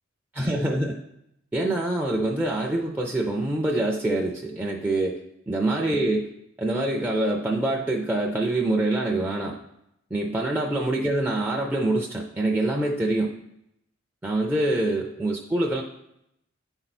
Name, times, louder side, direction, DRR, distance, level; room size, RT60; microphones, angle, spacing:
voice 1, 0.3-1.0 1.5-5.2 5.5-6.3 6.6-9.6 10.1-13.3 14.2-15.8, right 2 dB, 10° right, -1 dB, 0.4 m, -25 dB
9.4 x 4.4 x 4.1 m, 0.81 s
head